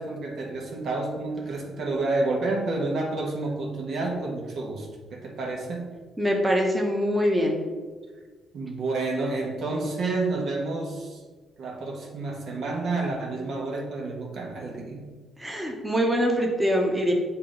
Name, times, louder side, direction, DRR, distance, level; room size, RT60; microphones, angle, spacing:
voice 1, 0.0-5.9 8.5-11.2 11.6-15.0, right 2 dB, 65° right, -1 dB, 1.2 m, -29 dB
voice 2, 6.2-7.6 15.4-17.1, equal, 10° right, 0 dB, 1.0 m, -23 dB
8.3 x 2.9 x 3.9 m, 1.4 s
cardioid pair, 90°, 0 cm